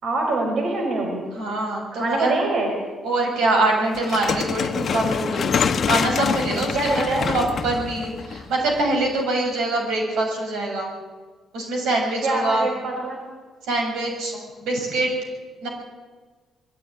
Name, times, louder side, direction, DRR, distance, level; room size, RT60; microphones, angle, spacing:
voice 1, 0.0-1.2 1.9-2.7 6.7-7.3 12.2-13.2, right 2 dB, 65° right, 1 dB, 5.2 m, -24 dB
voice 2, 1.3-2.4 3.0-5.5 5.9-10.9 11.5-12.7 13.6-14.3 14.6-15.1 15.6-15.7, right 2 dB, 85° right, 1 dB, 7.0 m, -24 dB
sound 1, 3.9-9.1, left 6 dB, 50° left, 1.1 m, -25 dB
21.5 x 15.0 x 9.8 m, 1.4 s
cardioid pair, 90°, 0 cm